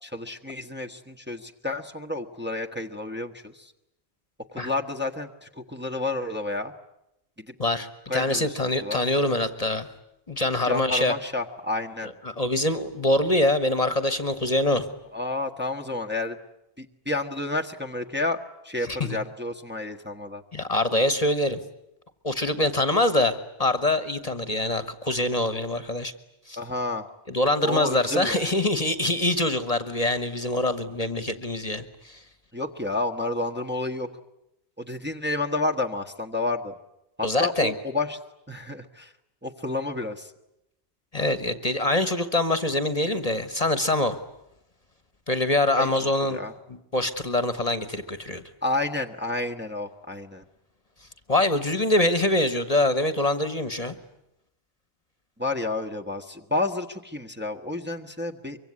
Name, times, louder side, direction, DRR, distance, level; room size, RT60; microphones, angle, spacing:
voice 1, 0.0-3.7 4.5-6.7 7.4-7.5 8.1-8.6 8.8-9.0 10.6-12.1 15.1-16.4 16.8-20.4 26.6-27.1 27.6-28.4 32.5-34.1 34.8-36.7 37.2-38.2 38.5-39.1 39.4-40.3 45.7-46.5 48.6-50.4 55.4-58.6, left 2 dB, 10° right, 2 dB, 1.3 m, -30 dB
voice 2, 7.6-9.9 10.3-11.1 12.4-14.9 18.8-19.2 20.5-21.6 22.2-26.1 26.5-26.6 27.3-32.2 37.2-37.7 41.1-44.2 45.3-46.4 46.7-48.4 51.3-53.9, left 1 dB, 35° left, 11 dB, 1.4 m, -24 dB
24.5 x 24.0 x 9.7 m, 0.85 s
omnidirectional pair, 1.1 m